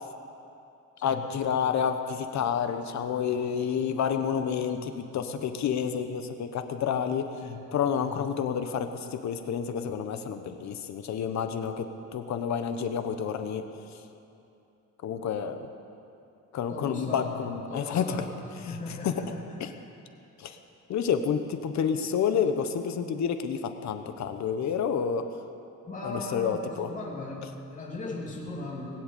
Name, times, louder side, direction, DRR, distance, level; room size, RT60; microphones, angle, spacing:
voice 1, 1.0-7.3 7.7-13.7 15.0-15.7 16.5-18.2 19.0-19.1 19.6-19.7 20.4-20.6 20.9-25.3 26.0-26.9, left 7 dB, 65° left, 8 dB, 1.1 m, -29 dB
voice 2, 16.7-18.3 18.7-19.8 24.2-24.4 25.8-29.0, left 2 dB, 25° left, -3 dB, 2.9 m, -38 dB
20.0 x 7.9 x 8.7 m, 2.7 s
cardioid pair, 145°, 31 cm